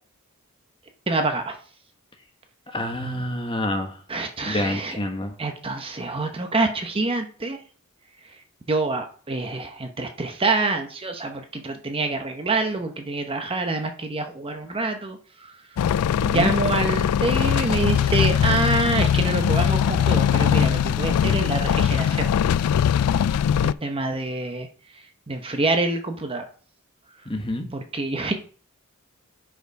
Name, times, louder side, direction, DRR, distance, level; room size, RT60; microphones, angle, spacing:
voice 1, 1.1-1.6 4.1-5.0 5.4-7.6 8.7-15.6 16.3-22.3 23.6-24.7 24.9-26.5 27.7-28.3, right 2 dB, 25° right, 5 dB, 0.8 m, -26 dB
voice 2, 2.7-4.0 4.4-5.3 16.2-16.5 27.2-27.7, left 1 dB, 25° left, 5 dB, 1.3 m, -27 dB
sound 1, 15.8-23.7, left 8 dB, 85° left, 0.3 m, -21 dB
8.1 x 5.0 x 5.2 m, 0.42 s
head